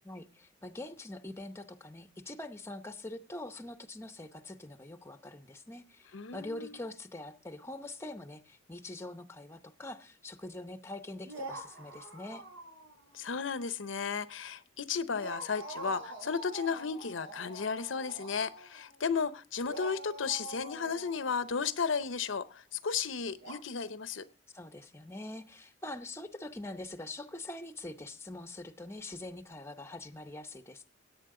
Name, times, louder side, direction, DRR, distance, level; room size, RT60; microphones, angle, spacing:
voice 1, 0.0-6.1 6.3-12.4 24.5-30.9, left 2 dB, 15° left, 9 dB, 0.8 m, -44 dB
voice 2, 6.1-6.8 13.1-24.2, left 5 dB, 80° left, 13 dB, 0.7 m, -34 dB
sound 1, 11.2-13.2 13.5-13.6 15.1-19.0 19.7-22.1 23.4-23.5, right 1 dB, 80° right, 5.2 m, -45 dB
17.0 x 8.6 x 3.7 m, 0.34 s
head